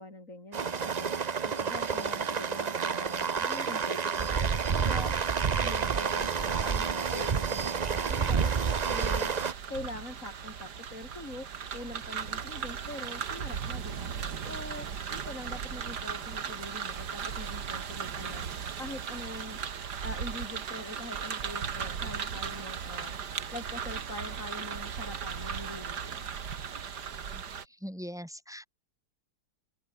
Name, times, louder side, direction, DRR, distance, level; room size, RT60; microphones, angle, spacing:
voice 1, 0.0-9.3 9.7-19.6 20.0-26.3, left 2 dB, 50° left, 6.8 m, -43 dB
sound 1, 0.5-9.5, right 6 dB, 40° right, 0.6 m, -29 dB
sound 2, 8.1-27.7, right 7 dB, 80° right, 2.2 m, -37 dB
voice 2, 27.3-28.7, equal, ahead, 5.6 m, -42 dB
open air
omnidirectional pair, 1.7 m